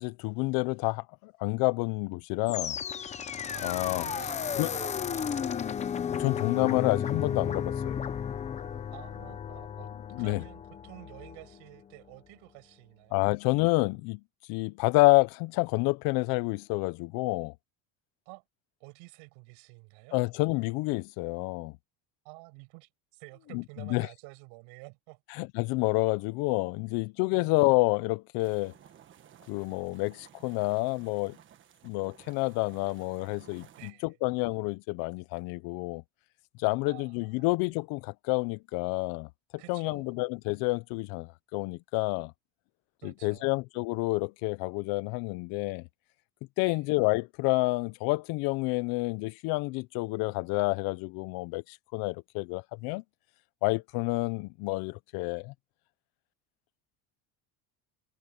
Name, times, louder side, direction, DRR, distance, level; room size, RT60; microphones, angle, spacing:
voice 1, 0.0-2.8 3.6-4.1 4.5-4.7 6.2-8.0 10.1-10.4 13.1-14.2 14.5-17.5 20.1-21.7 23.5-24.1 25.3-28.7 29.5-31.4 31.8-36.0 36.6-39.3 39.7-42.3 43.0-45.8 46.6-53.0 53.6-55.5, left 24 dB, 60° left, 0.6 m, -29 dB
sound 1, 2.5-11.6, left 7 dB, 15° left, 0.6 m, -34 dB
voice 2, 4.0-5.7 8.9-9.9 10.2-13.2 18.3-18.4 18.8-20.2 22.2-25.2 27.3-27.6 33.8-34.2 36.9-37.5 39.6-40.1 43.0-43.6 46.6-46.8, right 34 dB, 85° right, 7.6 m, -50 dB
sound 2, 28.4-33.9, right 10 dB, 30° right, 1.4 m, -56 dB
cardioid pair, 180°, 42 cm